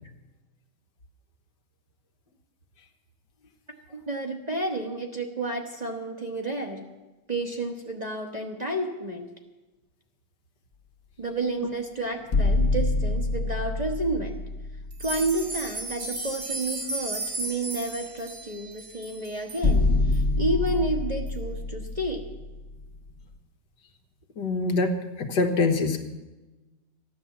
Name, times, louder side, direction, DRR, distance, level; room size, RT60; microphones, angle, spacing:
voice 1, 3.9-6.8 7.3-9.3 11.2-14.4 15.0-22.2, right 2 dB, 25° right, 1 dB, 1.1 m, -30 dB
sound 1, 12.2-15.8 16.2-16.3 19.6-23.2, left 2 dB, 45° left, 1.2 m, -26 dB
sound 2, 14.9-19.7 20.1-20.2 20.7-20.8 21.3-21.4, right 2 dB, 65° right, 2.5 m, -34 dB
voice 2, 24.4-26.0, left 3 dB, 75° left, 4 dB, 1.9 m, -25 dB
14.5 x 10.5 x 7.3 m, 1.1 s
omnidirectional pair, 1.9 m